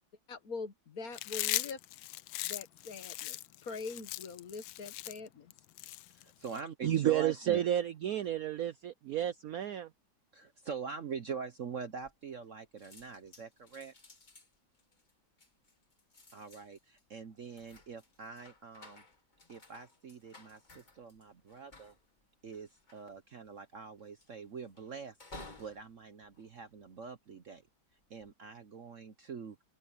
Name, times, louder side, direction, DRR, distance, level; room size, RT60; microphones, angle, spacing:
voice 1, 0.3-1.8 2.4-5.5, left 4 dB, 50° left, 1.7 m, -43 dB
Chewing mastication, 1.1-6.6, left 16 dB, 80° left, 1.3 m, -38 dB
voice 2, 6.1-7.6 10.3-13.9 16.3-19.0 19.5-21.9 22.4-27.6 28.1-29.6, right 6 dB, 50° right, 1.0 m, -44 dB
voice 3, 6.8-9.9, right 11 dB, 75° right, 0.8 m, -31 dB
sound 1, 12.0-12.5 12.8-27.3 27.9-28.3, left 2 dB, 25° left, 1.6 m, -57 dB
omnidirectional pair, 2.2 m